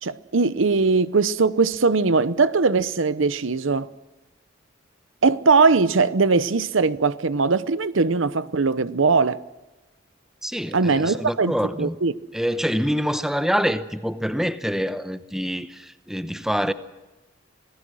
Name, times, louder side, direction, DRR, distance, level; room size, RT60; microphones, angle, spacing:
voice 1, 0.0-3.9 5.2-9.4 10.7-11.5 11.8-12.1, right 4 dB, 80° right, 0.8 m, -20 dB
voice 2, 10.4-12.0 12.3-16.7, equal, ahead, 0.8 m, -25 dB
26.5 x 18.5 x 6.3 m
head